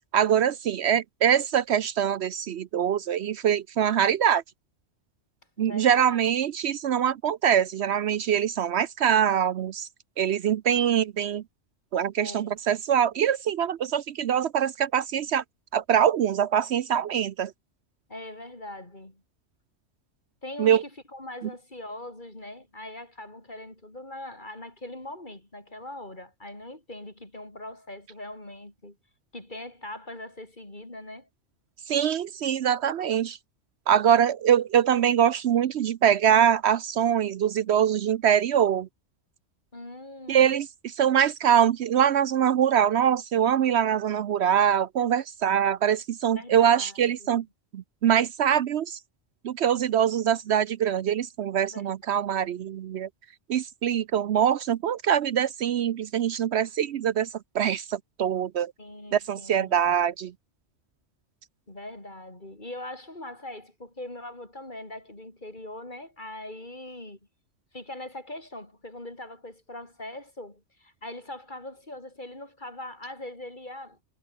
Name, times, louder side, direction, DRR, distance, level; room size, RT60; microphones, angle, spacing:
voice 1, 0.0-4.4 5.6-9.9 10.2-11.4 11.9-15.4 15.7-17.5 20.6-20.8 31.9-33.4 33.9-38.9 40.3-47.5 47.7-49.0 49.4-53.1 53.5-57.3 57.5-58.7 59.1-60.3, right 9 dB, 70° right, 0.9 m, -23 dB
voice 2, 5.6-6.2 12.2-12.6 18.1-19.2 20.4-29.0 29.3-31.3 39.7-40.6 46.3-47.4 51.7-52.5 58.8-59.8 61.7-67.2 67.7-74.0, left 1 dB, 40° left, 5.0 m, -41 dB
omnidirectional pair, 1.2 m